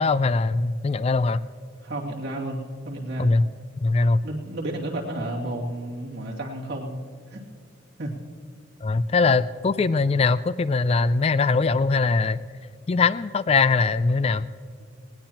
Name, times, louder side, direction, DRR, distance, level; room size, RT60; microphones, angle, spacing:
voice 1, 0.0-1.4 3.2-3.5 3.8-4.2 8.8-12.4 12.9-14.5, left 4 dB, 30° left, 15 dB, 0.3 m, -21 dB
voice 2, 1.8-3.3 4.2-7.0 7.3-7.4 8.0-8.1, right 1 dB, 60° right, -2 dB, 2.6 m, -31 dB
19.5 x 18.0 x 2.9 m, 2.1 s
head